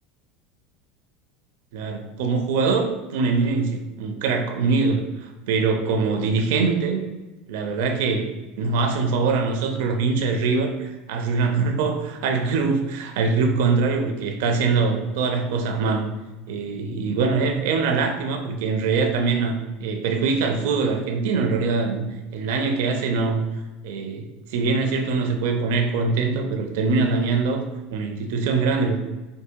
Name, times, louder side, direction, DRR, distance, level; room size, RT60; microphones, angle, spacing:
voice 1, 1.7-7.1 7.5-8.3 8.6-16.1 16.5-23.4 23.8-27.6 27.9-29.0, right 4 dB, 75° right, 4 dB, 0.5 m, -23 dB
4.7 x 2.7 x 2.2 m, 1.1 s
supercardioid pair, 125°, 0 cm